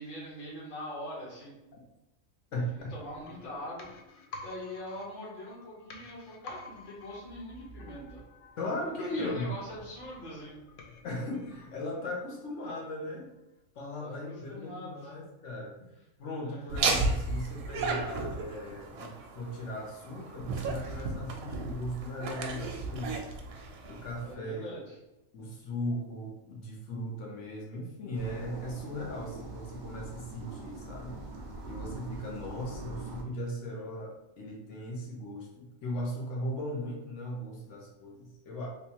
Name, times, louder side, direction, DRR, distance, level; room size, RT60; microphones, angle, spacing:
voice 1, 0.0-1.5 2.5-8.2 9.0-10.5 14.0-15.1 16.4-16.6 24.2-25.0, left 1 dB, 40° left, -6 dB, 1.2 m, -43 dB
voice 2, 2.5-2.9 8.6-9.5 11.0-13.3 13.7-15.9 16.2-23.3 23.8-24.7 25.3-31.2 31.6-38.7, left 1 dB, 65° left, -1 dB, 1.1 m, -38 dB
sound 1, 2.8-12.5 12.8-12.9, left 2 dB, 85° left, 0.4 m, -50 dB
Laughter, 16.7-24.3, right 3 dB, 85° right, 1.0 m, -34 dB
sound 2, 28.1-33.2, right 2 dB, 65° right, 0.4 m, -43 dB
3.4 x 2.7 x 2.8 m, 0.95 s
omnidirectional pair, 1.5 m